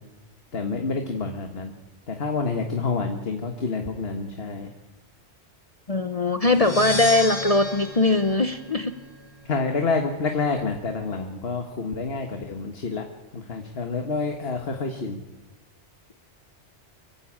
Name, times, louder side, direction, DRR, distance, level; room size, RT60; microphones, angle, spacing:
voice 1, 0.5-1.7 2.1-4.7 9.5-13.0 13.3-15.2, left 4 dB, 60° left, 4 dB, 1.8 m, -28 dB
voice 2, 5.9-8.9, left 2 dB, 35° left, 9 dB, 0.9 m, -21 dB
sound 1, 6.4-9.3, equal, 40° right, 4.2 m, -32 dB
24.5 x 15.5 x 8.6 m, 1.1 s
omnidirectional pair, 1.2 m